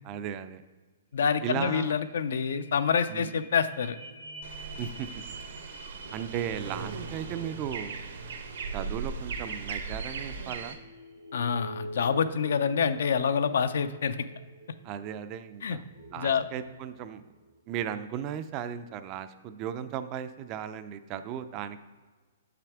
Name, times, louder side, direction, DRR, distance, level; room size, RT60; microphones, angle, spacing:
voice 1, 0.0-0.6 1.4-2.0 3.1-3.3 4.8-5.2 6.1-8.1 8.7-10.8 14.8-15.8 16.1-17.2 17.7-21.8, right 9 dB, 25° right, 11 dB, 0.4 m, -36 dB
voice 2, 1.1-4.0 11.3-14.2 15.6-15.8 16.2-16.5, left 6 dB, 75° left, 12 dB, 0.5 m, -27 dB
sound 1, 1.2-1.3 1.5-17.5 18.0-18.1, right 2 dB, 85° right, 1.4 m, -47 dB
sound 2, 4.4-10.7, right 5 dB, 70° right, 0.9 m, -38 dB
7.3 x 5.8 x 3.5 m, 1.4 s
hypercardioid pair, 165°, 0 cm